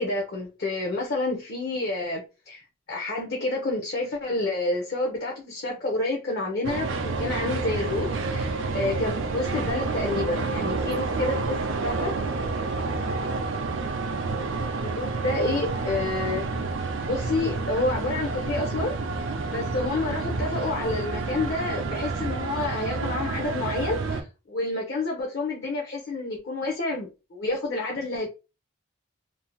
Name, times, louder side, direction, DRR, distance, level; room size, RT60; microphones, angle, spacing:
voice 1, 0.0-2.6 2.9-12.1 14.8-16.5 17.1-18.9 19.5-28.3, left 2 dB, 50° left, 0.6 m, -29 dB
sound 1, 6.6-24.2, right 3 dB, 65° right, 0.4 m, -29 dB
2.6 x 2.0 x 2.9 m
head